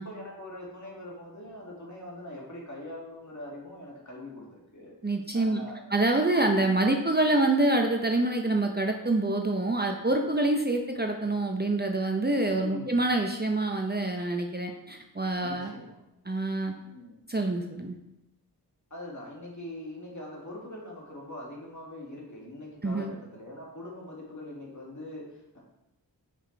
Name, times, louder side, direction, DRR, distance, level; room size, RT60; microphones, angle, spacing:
voice 1, 0.0-4.9 5.3-5.8 12.4-13.0 15.4-16.0 16.7-17.2 18.9-25.6, left 1 dB, 45° left, -3 dB, 2.3 m, -42 dB
voice 2, 5.0-5.6 5.9-15.7 16.3-16.7 17.3-17.9 22.8-23.1, right 2 dB, 25° right, 3 dB, 0.7 m, -26 dB
6.0 x 5.0 x 4.6 m, 0.90 s
wide cardioid pair, 40°, 40 cm